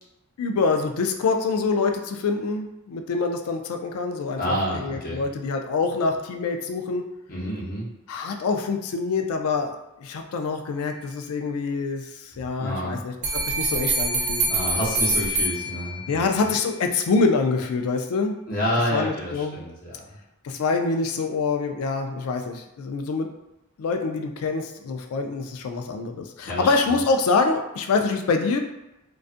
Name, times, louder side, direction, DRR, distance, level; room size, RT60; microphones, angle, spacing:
voice 1, 0.4-7.0 8.1-9.7 10.0-12.1 12.4-14.4 16.1-18.4 18.9-19.6 20.4-23.3 23.8-28.6, left 4 dB, 85° left, 5 dB, 0.3 m, -25 dB
voice 2, 4.4-5.2 7.3-7.9 12.6-13.0 14.4-16.3 18.5-20.0 26.5-27.0, equal, 40° left, -5 dB, 0.7 m, -28 dB
sound 1, 13.2-16.3, right 2 dB, 35° right, 0.4 m, -25 dB
2.5 x 2.3 x 2.4 m, 0.95 s
head